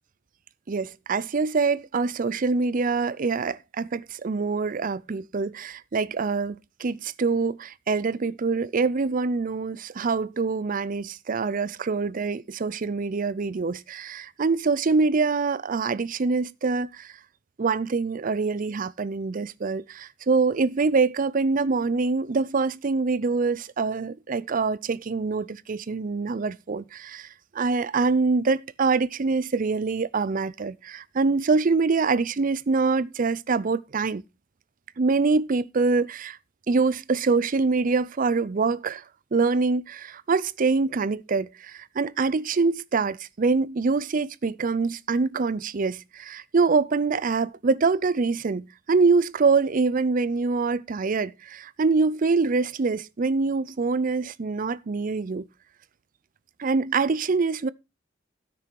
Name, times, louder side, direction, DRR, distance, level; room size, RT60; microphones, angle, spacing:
voice 1, 0.7-17.1 17.6-27.3 27.5-34.2 35.0-36.4 36.7-39.0 39.3-55.5 56.6-57.7, right 4 dB, 45° right, 0.5 m, -25 dB
13.0 x 6.2 x 4.5 m
head